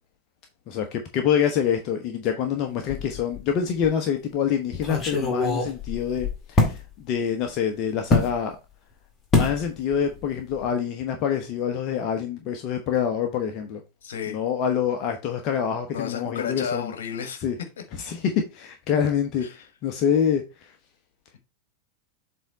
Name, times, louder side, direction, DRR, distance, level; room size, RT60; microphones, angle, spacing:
voice 1, 0.7-8.6 9.3-13.8 14.3-16.9 17.4-17.6 18.0-20.4, left 8 dB, 40° left, 1.0 m, -26 dB
sound 1, 2.9-3.5 3.8-3.9 4.7-6.8 8.1-8.3 9.3-9.6 9.9-10.2 10.5-10.7, left 3 dB, 20° left, 2.0 m, -24 dB
voice 2, 14.0-14.4 15.9-17.4 19.4-19.6, left 7 dB, 60° left, 1.4 m, -32 dB
7.7 x 3.6 x 4.1 m
figure-of-eight pair, 90°, 0 cm